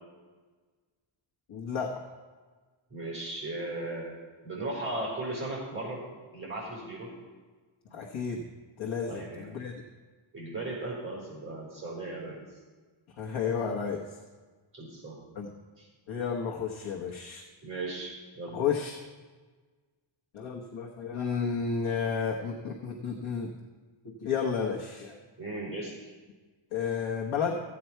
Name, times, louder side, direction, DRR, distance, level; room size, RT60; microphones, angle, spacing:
voice 1, 1.5-2.0 7.9-8.5 8.8-9.7 13.2-14.1 15.3-15.5 16.1-17.4 18.5-19.0 20.3-23.5 24.0-25.2 26.7-27.6, left 6 dB, 70° left, -1 dB, 1.3 m, -32 dB
voice 2, 2.9-4.2 4.4-6.0 6.3-7.1 9.1-9.6 10.3-12.4 14.7-15.2 15.8-15.9 17.6-18.6 25.4-26.2, right 2 dB, 25° right, -4 dB, 4.5 m, -37 dB
14.5 x 8.7 x 4.5 m, 1.4 s
wide cardioid pair, 175°, 49 cm